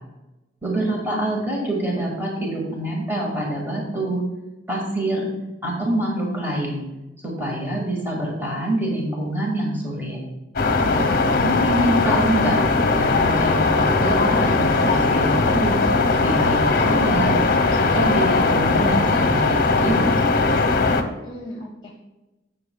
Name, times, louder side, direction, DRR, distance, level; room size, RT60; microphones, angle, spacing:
voice 1, 0.6-4.2 4.7-5.3 5.6-6.8 7.2-10.2 10.9-12.6 12.9-15.8 16.2-17.4 17.8-20.0, right 1 dB, 10° right, -2 dB, 1.8 m, -25 dB
sound 1, 10.6-21.0, left 3 dB, 50° left, 0.8 m, -19 dB
voice 2, 10.8-11.9 21.2-21.9, equal, 25° left, 0 dB, 1.0 m, -37 dB
17.0 x 6.8 x 2.3 m, 1.0 s
head